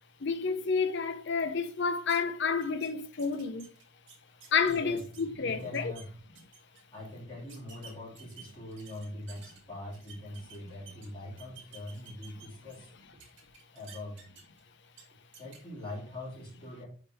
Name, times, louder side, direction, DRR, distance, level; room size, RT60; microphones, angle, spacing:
voice 1, 0.2-3.7 4.5-5.9, left 5 dB, 55° left, 0.6 m, -30 dB
sound 1, 2.1-2.2 2.6-2.9 3.2-5.2 5.6-6.0 6.3-6.8 7.5-9.6 9.9-11.1 11.4-12.9 13.2-14.6 14.9-15.0 15.3-15.6, right 7 dB, 60° right, 1.8 m, -52 dB
voice 2, 4.3-5.0 5.3-6.1 6.9-12.9 13.7-14.2 15.4-16.9, left 1 dB, 20° left, 3.4 m, -43 dB
5.0 x 4.3 x 4.6 m
head